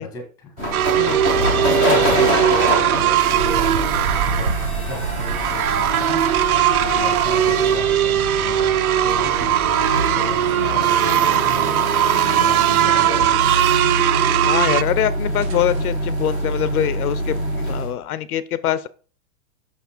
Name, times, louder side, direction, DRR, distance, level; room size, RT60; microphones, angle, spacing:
voice 1, 0.0-13.7, left 2 dB, 5° left, 4 dB, 1.0 m, -36 dB
sound 1, 0.6-17.9, equal, 10° right, 0.5 m, -25 dB
sound 2, 0.7-14.8, right 12 dB, 65° right, 0.6 m, -19 dB
sound 3, 3.3-10.5 10.8-11.7 12.0-12.1 12.5-12.6 14.7-14.8 15.1-15.2 15.3-15.9, right 6 dB, 90° right, 1.5 m, -30 dB
voice 2, 14.4-18.9, left 12 dB, 70° left, 15 dB, 0.6 m, -23 dB
6.2 x 5.9 x 4.3 m, 0.40 s
supercardioid pair, 175°, 47 cm